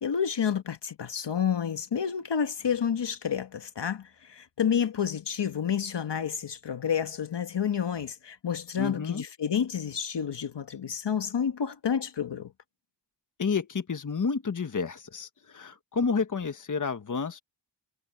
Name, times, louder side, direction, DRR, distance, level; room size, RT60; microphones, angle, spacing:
voice 1, 0.0-12.5, left 8 dB, 70° left, 1.6 m, -29 dB
voice 2, 8.8-9.2 13.4-17.4, left 5 dB, 40° left, 1.4 m, -30 dB
wide cardioid pair, 95°, 45 cm